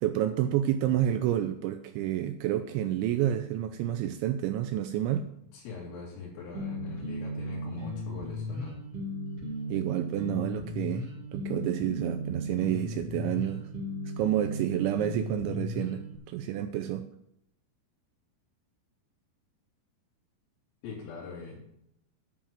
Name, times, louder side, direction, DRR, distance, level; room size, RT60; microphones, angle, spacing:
voice 1, 0.0-5.2 9.7-13.7 14.2-17.1, right 11 dB, 80° right, 8 dB, 2.8 m, -29 dB
voice 2, 5.5-8.8 20.8-21.7, left 5 dB, 90° left, -7 dB, 5.3 m, -42 dB
sound 1, 6.5-16.1, left 1 dB, 50° right, 2.0 m, -36 dB
10.5 x 5.6 x 8.6 m, 0.76 s
omnidirectional pair, 5.7 m